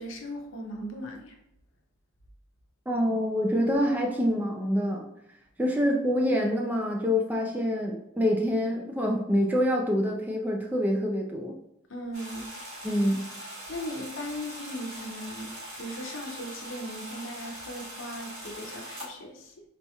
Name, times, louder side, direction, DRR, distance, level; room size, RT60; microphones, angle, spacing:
voice 1, 0.0-1.3 11.9-12.5 13.7-15.5 15.8-19.5, equal, 65° left, 2 dB, 0.7 m, -38 dB
voice 2, 2.9-5.1 5.6-11.5 12.8-13.2, equal, 10° right, 0 dB, 0.3 m, -26 dB
sound 1, 12.1-19.1, right 1 dB, 90° right, 1.4 m, -42 dB
4.1 x 2.9 x 2.3 m, 0.78 s
head